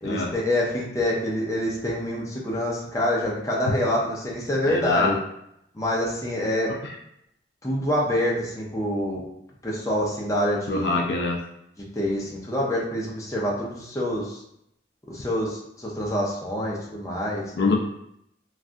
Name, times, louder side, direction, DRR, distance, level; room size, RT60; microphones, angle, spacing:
voice 1, 0.0-5.2 5.7-6.8 7.6-9.2 9.6-11.0 12.0-14.4 15.1-17.5, left 1 dB, 15° left, -4 dB, 0.6 m, -26 dB
voice 2, 4.7-5.1 10.7-11.4 17.6-17.7, left 3 dB, 60° left, 0 dB, 0.4 m, -24 dB
3.2 x 2.4 x 2.5 m, 0.77 s
head